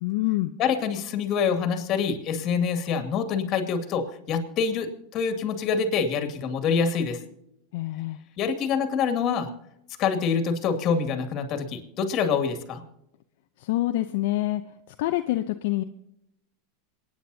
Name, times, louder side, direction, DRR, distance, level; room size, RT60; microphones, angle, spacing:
voice 1, 0.0-0.5 7.7-8.2 13.6-14.6 15.0-15.8, left 16 dB, 70° left, 7 dB, 0.7 m, -26 dB
voice 2, 0.6-7.2 8.4-9.5 10.0-12.8, left 6 dB, 45° left, 6 dB, 2.3 m, -26 dB
27.5 x 9.6 x 2.8 m, 0.77 s
hypercardioid pair, 115°, 0 cm